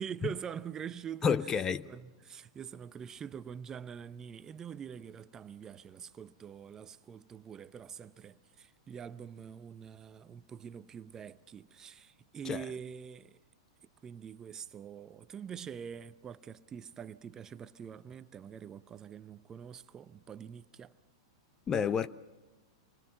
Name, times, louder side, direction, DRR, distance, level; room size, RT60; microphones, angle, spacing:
voice 1, 0.0-13.4 14.0-20.9, right 8 dB, 25° right, 0.8 m, -45 dB
voice 2, 1.2-1.9 12.5-12.6 21.7-22.1, left 6 dB, 25° left, 0.7 m, -29 dB
26.5 x 21.0 x 5.9 m
hypercardioid pair, 105°, 2 cm